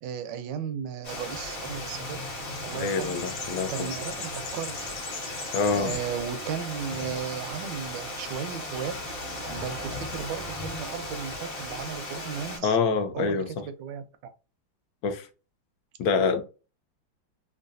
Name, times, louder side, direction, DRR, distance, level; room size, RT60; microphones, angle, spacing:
voice 1, 0.0-2.2 2.6-3.2 3.7-4.8 5.7-8.9 9.5-12.8 13.1-14.3, right 8 dB, 75° right, 1.2 m, -35 dB
Water, 1.0-12.6, left 1 dB, 40° left, 1.7 m, -36 dB
sound 1, 1.6-11.3, left 4 dB, 85° left, 1.7 m, -43 dB
voice 2, 2.8-3.9 5.5-5.9 12.6-13.5 15.0-15.3 16.0-16.4, left 5 dB, 65° left, 1.1 m, -26 dB
3.9 x 2.3 x 2.5 m
omnidirectional pair, 2.1 m